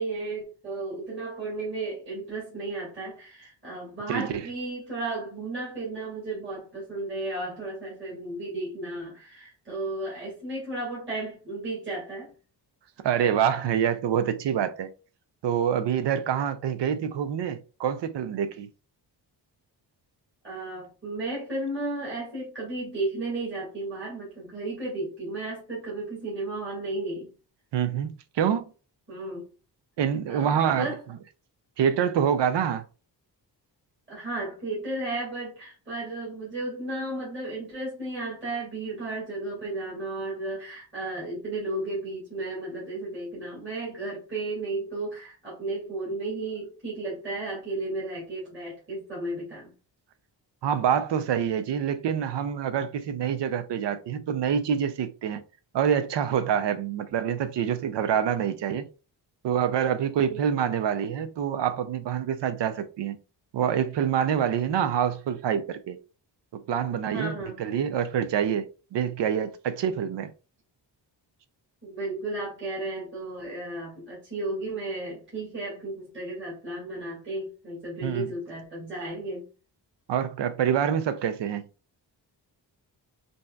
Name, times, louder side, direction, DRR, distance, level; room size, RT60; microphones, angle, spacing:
voice 1, 0.0-12.3 20.4-27.3 29.1-29.5 30.3-31.0 34.1-49.7 60.3-60.4 67.1-67.6 71.8-79.5, right 2 dB, 25° right, 2.0 m, -34 dB
voice 2, 4.1-4.4 13.0-14.9 15.4-18.7 27.7-28.6 30.0-30.9 31.8-32.8 50.6-55.4 55.7-58.8 59.4-63.2 63.5-66.0 66.5-70.3 78.0-78.3 80.1-81.6, right 8 dB, 75° right, 0.6 m, -26 dB
5.3 x 2.8 x 2.3 m
wide cardioid pair, 170°, 43 cm